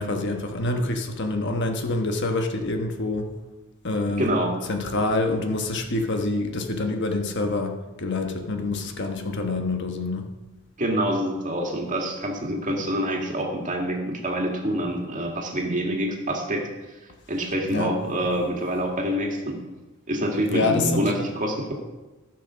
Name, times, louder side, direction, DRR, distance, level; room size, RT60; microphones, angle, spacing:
voice 1, 0.0-3.3 3.8-4.3 4.7-10.3 17.7-18.0 20.5-21.0, left 2 dB, 55° left, 1.2 m, -26 dB
voice 2, 4.2-4.5 10.8-16.7 17.3-19.6 20.1-21.7, equal, 35° right, 2.1 m, -26 dB
15.0 x 6.1 x 6.3 m
head